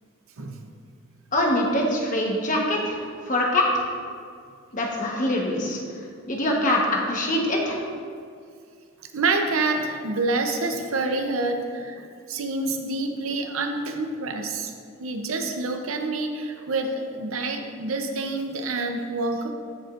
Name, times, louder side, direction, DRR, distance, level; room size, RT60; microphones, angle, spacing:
voice 1, 1.3-3.0 3.3-3.7 4.7-5.8 6.3-7.8, left 1 dB, 40° left, -1 dB, 1.1 m, -23 dB
voice 2, 9.1-14.7 15.0-19.5, right 3 dB, 80° right, 5 dB, 0.7 m, -27 dB
14.5 x 5.2 x 2.5 m, 2.2 s
head